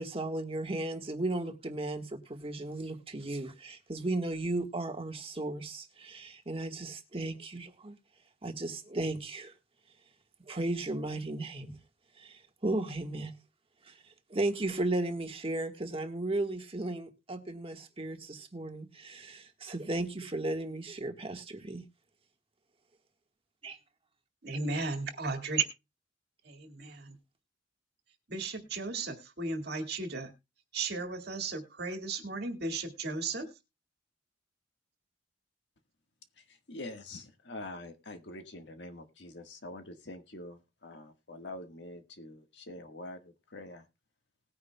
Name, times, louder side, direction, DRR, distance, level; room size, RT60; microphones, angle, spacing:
voice 1, 0.0-8.0 8.4-9.5 10.5-11.7 12.2-13.3 13.9-14.0 14.3-21.8 23.6-23.8, right 2 dB, 30° right, 1.5 m, -35 dB
voice 2, 24.4-25.6 26.4-27.2 28.3-30.3 30.7-33.5, right 4 dB, 60° right, 2.0 m, -35 dB
voice 3, 36.4-43.9, left 2 dB, 65° left, 1.6 m, -45 dB
19.5 x 9.5 x 2.3 m
head